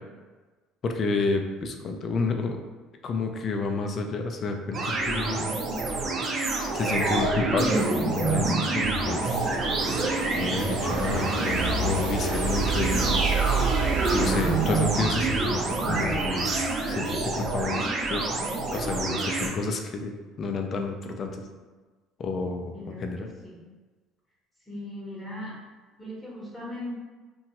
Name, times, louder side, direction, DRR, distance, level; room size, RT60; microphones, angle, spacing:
voice 1, 0.8-2.6 3.0-5.5 6.7-9.5 9.9-10.0 10.3-13.3 14.1-16.6 16.9-17.9 18.1-18.3 18.7-21.4 22.2-23.3, left 3 dB, 45° left, 4 dB, 0.4 m, -30 dB
sound 1, 4.7-19.5, right 3 dB, 40° right, 0.4 m, -27 dB
sound 2, 8.1-16.6, right 3 dB, 90° right, 0.6 m, -31 dB
voice 2, 22.7-23.6 24.7-25.6 26.0-26.9, left 1 dB, 15° left, -6 dB, 0.9 m, -39 dB
2.9 x 2.2 x 2.8 m, 1.3 s
supercardioid pair, 95°, 0 cm